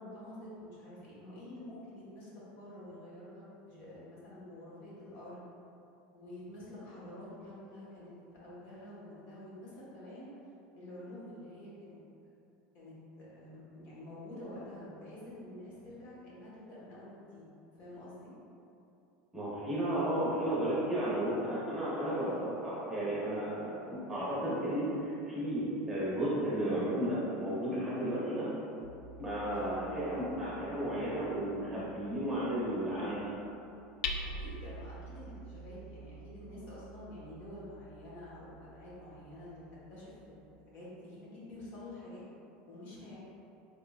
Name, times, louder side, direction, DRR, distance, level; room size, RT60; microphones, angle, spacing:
voice 1, 0.0-5.4 6.1-8.1 8.4-10.3 10.8-12.0 12.7-17.5 17.8-18.3 22.2-22.4 28.0-28.3 29.5-29.8 34.2-39.6 39.9-42.2 42.7-43.2, left 1 dB, 50° left, -8 dB, 1.3 m, -48 dB
voice 2, 19.3-28.5 29.2-33.2, right 1 dB, 10° right, -9 dB, 1.0 m, -33 dB
Hammer, 28.8-40.5, left 1 dB, 85° left, 0.3 m, -46 dB
4.0 x 3.6 x 2.4 m, 2.8 s
supercardioid pair, 145°, 4 cm